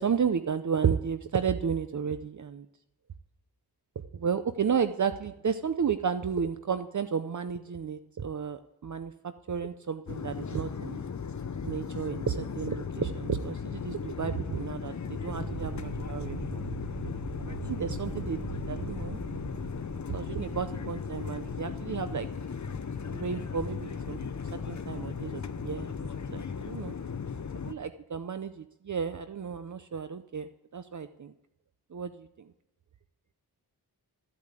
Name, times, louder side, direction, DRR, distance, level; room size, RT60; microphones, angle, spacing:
voice 1, 0.0-2.7 4.1-11.0 11.6-16.6 17.4-19.2 20.1-22.3 23.1-24.2 24.7-25.9 26.3-26.9 27.7-31.3 31.9-32.5, right 7 dB, 45° right, 10 dB, 0.7 m, -32 dB
sound 1, 10.1-27.7, left 6 dB, 45° left, 0.8 m, -37 dB
sound 2, 15.2-27.2, right 3 dB, 75° right, 4.9 m, -43 dB
14.0 x 8.6 x 8.2 m, 0.86 s
wide cardioid pair, 95°, 40 cm